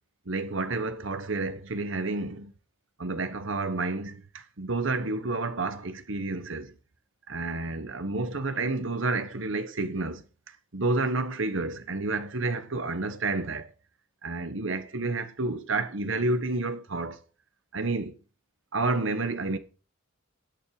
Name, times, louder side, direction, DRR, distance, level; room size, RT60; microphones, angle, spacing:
voice 1, 0.3-2.5 3.0-6.7 7.3-10.2 10.7-13.7 14.2-17.2 17.7-18.1 18.7-19.6, right 3 dB, 60° right, 1.2 m, -30 dB
10.5 x 8.7 x 4.8 m
head